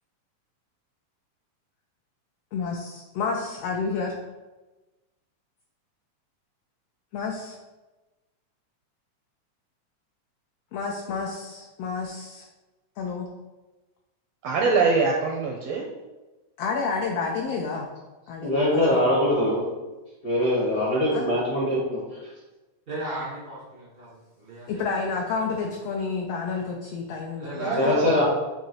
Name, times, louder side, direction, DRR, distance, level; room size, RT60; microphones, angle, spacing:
voice 1, 2.5-4.1 7.1-7.6 10.7-12.5 13.0-13.3 16.6-17.9 18.3-19.0 21.1-21.2 24.7-27.9, left 4 dB, 80° left, 0 dB, 1.4 m, -30 dB
voice 2, 14.4-15.9 18.9-19.0 27.6-28.1, right 4 dB, 80° right, 1 dB, 1.4 m, -24 dB
voice 3, 18.4-19.7 20.2-22.0 27.8-28.2, left 1 dB, 50° left, -6 dB, 1.1 m, -22 dB
voice 4, 22.9-24.8 27.4-28.0, right 1 dB, 45° right, -7 dB, 0.7 m, -36 dB
7.2 x 3.0 x 4.4 m, 1.1 s
omnidirectional pair, 3.4 m